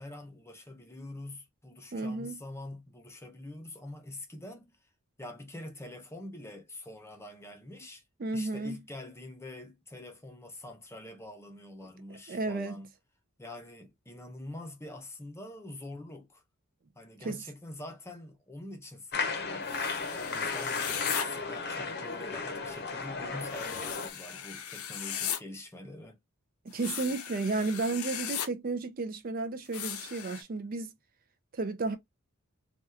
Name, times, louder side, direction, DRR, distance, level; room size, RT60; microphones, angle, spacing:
voice 1, 0.0-4.8 5.2-8.0 8.3-12.9 13.4-16.4 17.0-19.7 20.1-26.2, left 1 dB, 10° left, 0.7 m, -45 dB
voice 2, 1.9-2.4 8.2-8.8 12.3-12.8 17.2-17.4 26.7-30.9 31.5-32.0, right 3 dB, 40° right, 0.4 m, -32 dB
sound 1, 19.1-24.1, left 4 dB, 50° left, 0.7 m, -34 dB
sound 2, 19.6-21.2 23.5-25.4 26.7-28.5 29.7-30.4, left 9 dB, 90° left, 0.6 m, -37 dB
3.4 x 2.3 x 2.7 m
head